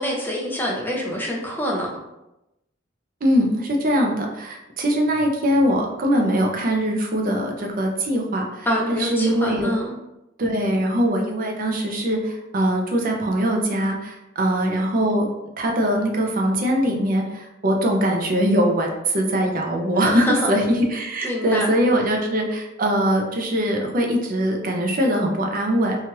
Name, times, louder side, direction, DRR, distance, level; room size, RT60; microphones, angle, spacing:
voice 1, 0.0-1.9 8.7-9.9 20.1-20.5 21.2-22.2, equal, 10° left, -2 dB, 0.5 m, -26 dB
voice 2, 3.2-9.7 10.4-15.3 15.6-26.0, equal, 45° right, 2 dB, 0.5 m, -22 dB
3.0 x 2.3 x 2.9 m, 0.94 s
head